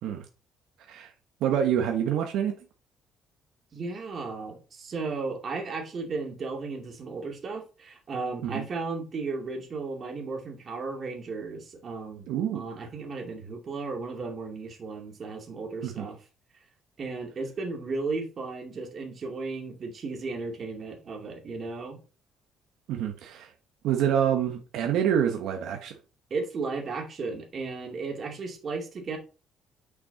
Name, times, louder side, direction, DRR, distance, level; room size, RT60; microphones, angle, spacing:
voice 1, 1.4-2.5 8.4-8.6 12.3-12.8 15.8-16.1 22.9-23.5 23.8-25.9, right 9 dB, 80° right, 1.2 m, -27 dB
voice 2, 3.7-16.2 17.0-22.0 26.3-29.2, right 4 dB, 40° right, 2.5 m, -35 dB
6.2 x 6.1 x 4.1 m
cardioid pair, 130°, 0 cm